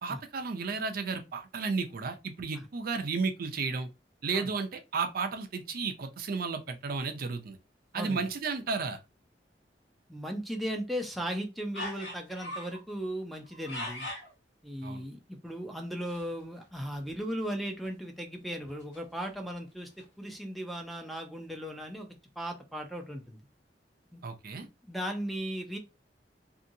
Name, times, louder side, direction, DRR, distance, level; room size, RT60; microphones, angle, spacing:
voice 1, 0.0-3.9 4.2-7.6 7.9-9.0 14.8-15.0 24.2-24.7, right 4 dB, 55° right, 0.5 m, -33 dB
voice 2, 10.1-14.1 14.6-22.1 22.4-23.4 24.1-24.2 24.6-25.8, equal, ahead, 0.5 m, -37 dB
sound 1, 11.7-12.8 13.4-14.3 16.0-16.3 16.6-16.7 17.0-17.1 17.7-17.9 18.5-19.5 20.0-20.1, left 1 dB, 85° left, 1.2 m, -41 dB
2.7 x 2.7 x 2.6 m
head